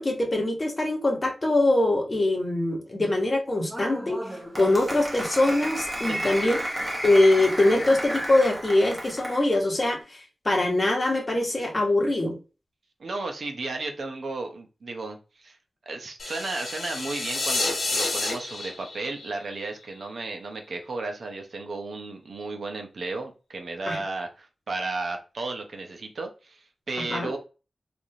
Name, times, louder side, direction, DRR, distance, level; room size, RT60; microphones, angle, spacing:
voice 1, 0.0-4.3 4.6-6.6 7.0-10.2 10.4-12.4 23.9-24.0 27.1-27.3, left 2 dB, 30° left, 1 dB, 1.0 m, -23 dB
Applause, 3.7-9.5, equal, 15° right, 0.9 m, -32 dB
voice 2, 6.1-6.6 13.0-15.6 15.9-27.4, right 3 dB, 65° right, 3 dB, 0.7 m, -34 dB
sound 1, 16.2-20.3, left 2 dB, 80° left, 1.2 m, -30 dB
3.3 x 2.5 x 2.7 m, 0.32 s
wide cardioid pair, 95°, 0 cm